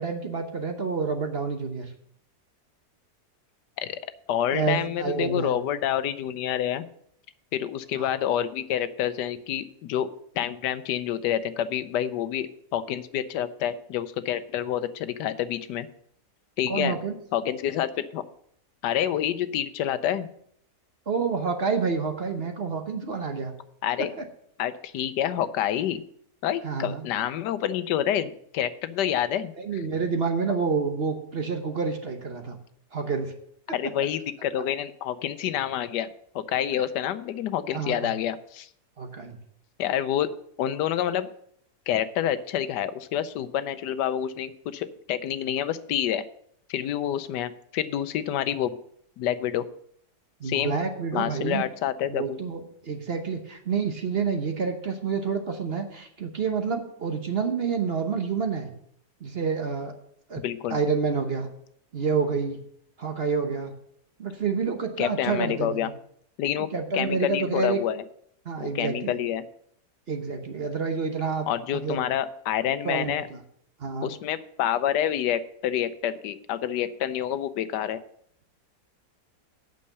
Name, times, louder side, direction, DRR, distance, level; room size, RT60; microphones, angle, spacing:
voice 1, 0.0-1.9 4.5-5.6 8.0-8.1 16.7-17.2 21.1-23.5 24.0-24.2 26.6-27.0 29.6-32.6 32.9-33.3 36.7-36.8 37.7-38.1 39.0-39.4 50.4-51.6 52.1-58.7 59.2-59.9 60.3-60.4 60.7-61.5 61.9-62.6 63.0-63.7 64.2-65.9 66.7-67.8 68.4-69.2 70.1-71.5 71.8-72.0 72.8-73.4 73.8-74.1, right 5 dB, 45° right, 5 dB, 1.0 m, -28 dB
voice 2, 4.3-6.9 7.5-10.1 10.3-15.9 16.6-16.9 17.3-18.2 18.8-20.3 23.8-24.1 24.6-26.0 26.4-29.8 33.7-36.1 36.3-38.7 39.8-40.3 40.6-41.3 41.9-46.2 46.7-48.8 49.2-49.6 50.4-50.8 51.1-52.4 60.4-60.8 65.0-65.9 66.4-68.0 68.6-69.4 71.5-73.3 74.0-78.0, left 10 dB, 90° left, 13 dB, 1.3 m, -28 dB
8.5 x 6.6 x 6.6 m, 0.68 s
omnidirectional pair, 1.8 m